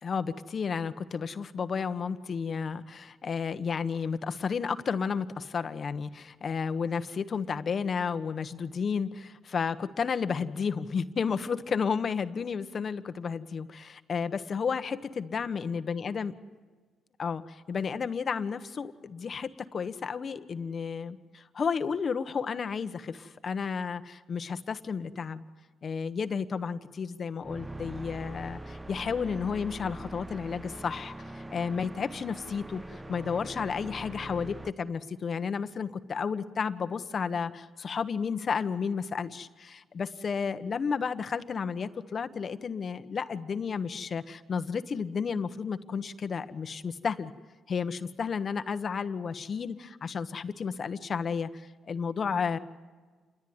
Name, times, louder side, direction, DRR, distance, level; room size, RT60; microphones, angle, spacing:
voice 1, 0.0-16.3 17.2-25.4 25.8-47.3 47.7-52.6, left 6 dB, 45° left, 11 dB, 1.3 m, -32 dB
sound 1, 27.4-34.7, right 1 dB, 15° right, 0.9 m, -42 dB
28.0 x 22.0 x 9.7 m, 1.4 s
cardioid pair, 90°, 0 cm